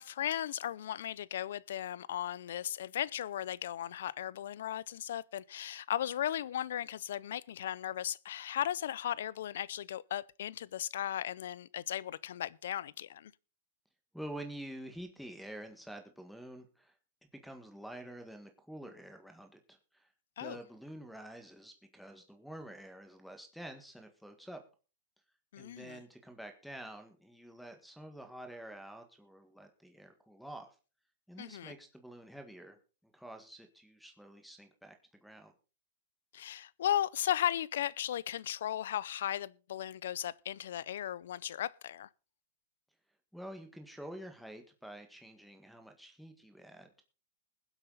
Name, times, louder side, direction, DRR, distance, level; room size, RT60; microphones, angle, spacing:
voice 1, 0.0-13.3 20.4-20.6 25.5-26.0 31.4-31.7 36.3-42.1, left 11 dB, 75° left, 0.6 m, -36 dB
voice 2, 14.1-16.9 17.4-20.1 20.4-24.6 25.6-30.7 31.3-35.0 35.2-35.5 43.3-47.0, right 1 dB, ahead, 1.6 m, -48 dB
20.5 x 8.1 x 4.0 m
hypercardioid pair, 140°, 0 cm